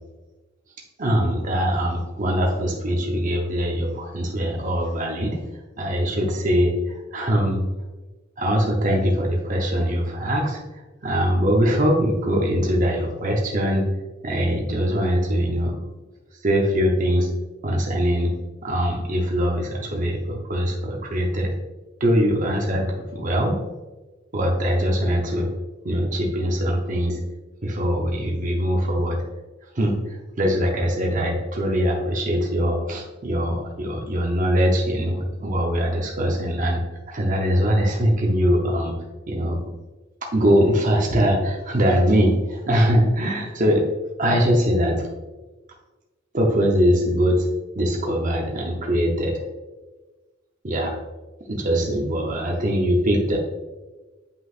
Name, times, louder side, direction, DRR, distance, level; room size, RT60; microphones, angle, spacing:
voice 1, 1.0-5.4 5.8-7.6 8.4-13.9 14.2-15.7 16.4-17.3 17.6-18.3 18.6-21.5 22.0-23.6 24.3-25.5 25.8-27.2 27.6-29.2 29.7-38.9 39.3-39.6 40.3-43.9 44.2-45.0 46.3-47.5 47.8-49.4 50.6-51.0 51.5-53.4, equal, 40° right, -1 dB, 0.8 m, -22 dB
7.8 x 5.5 x 2.4 m, 1.2 s
head